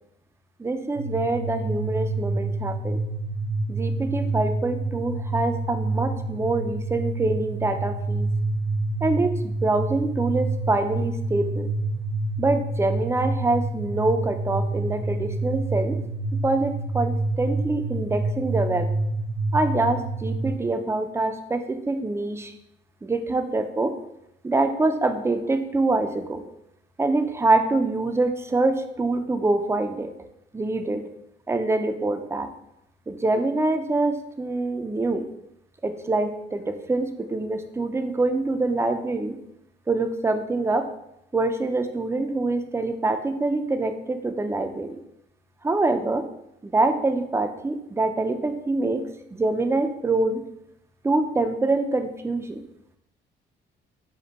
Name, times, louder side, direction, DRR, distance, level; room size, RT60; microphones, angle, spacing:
voice 1, 0.6-3.0 3.7-8.3 9.0-11.7 12.4-16.0 16.4-18.9 19.5-22.5 23.0-23.9 24.4-26.4 27.0-30.1 30.5-31.0 31.5-32.5 33.1-35.2 35.8-39.4 39.9-40.9 41.3-45.0 45.6-46.2 46.6-49.0 49.3-50.4 51.0-52.6, right 2 dB, 15° right, 6 dB, 0.4 m, -25 dB
sound 1, 1.0-20.5, right 2 dB, 50° right, 0.7 m, -28 dB
5.1 x 2.1 x 4.0 m, 0.80 s
cardioid pair, 90°, 20 cm